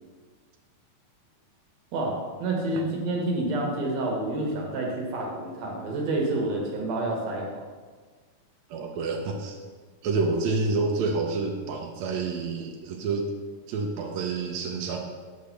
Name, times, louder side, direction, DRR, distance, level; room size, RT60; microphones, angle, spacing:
voice 1, 1.9-7.5, right 2 dB, 60° right, -1 dB, 2.3 m, -28 dB
voice 2, 8.7-9.6 10.0-13.3 13.7-15.0, right 3 dB, 80° right, 1 dB, 1.6 m, -28 dB
6.5 x 5.2 x 5.7 m, 1.5 s
omnidirectional pair, 3.9 m